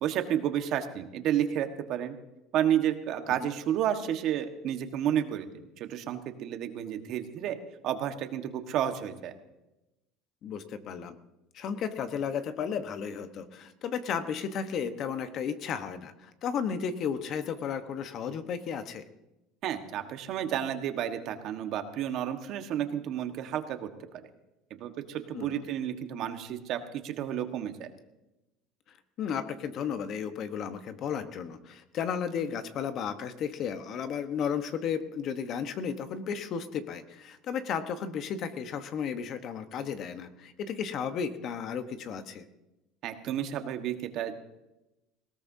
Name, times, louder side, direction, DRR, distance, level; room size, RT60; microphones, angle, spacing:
voice 1, 0.0-2.1 2.5-7.6 7.8-9.3 19.6-23.9 24.7-27.9 43.0-44.3, right 10 dB, 55° right, 6 dB, 1.4 m, -31 dB
voice 2, 10.4-11.1 11.5-19.0 25.3-25.6 29.2-42.4, left 7 dB, 50° left, 9 dB, 1.1 m, -34 dB
19.5 x 17.5 x 2.8 m, 0.97 s
supercardioid pair, 115°, 0 cm